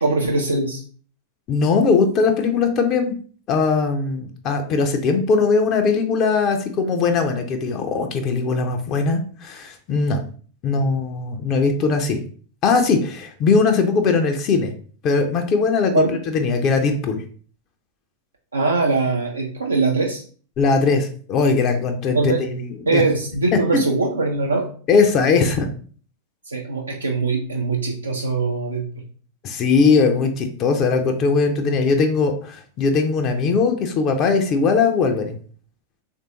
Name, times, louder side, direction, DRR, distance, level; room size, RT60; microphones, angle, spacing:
voice 1, 0.0-0.8 15.9-16.2 18.5-20.2 22.1-22.4 22.9-24.7 26.5-28.8, right 3 dB, 75° right, 0 dB, 0.4 m, -21 dB
voice 2, 1.5-3.2 3.5-10.2 10.6-12.2 12.6-14.7 15.0-17.2 20.6-23.0 23.5-23.6 24.9-25.7 29.4-35.4, left 4 dB, 35° left, 5 dB, 0.4 m, -20 dB
3.3 x 2.6 x 2.8 m, 0.43 s
figure-of-eight pair, 90°, 0 cm